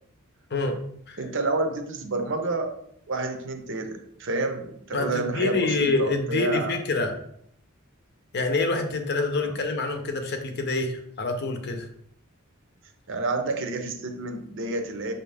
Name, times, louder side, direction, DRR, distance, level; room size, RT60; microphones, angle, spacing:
voice 1, 1.2-2.7 3.1-6.8 9.4-9.6 13.1-15.1, right 2 dB, 60° right, 6 dB, 0.6 m, -29 dB
voice 2, 4.9-7.2 8.3-11.9, left 3 dB, 50° left, 5 dB, 0.6 m, -26 dB
5.9 x 2.7 x 3.3 m, 0.68 s
head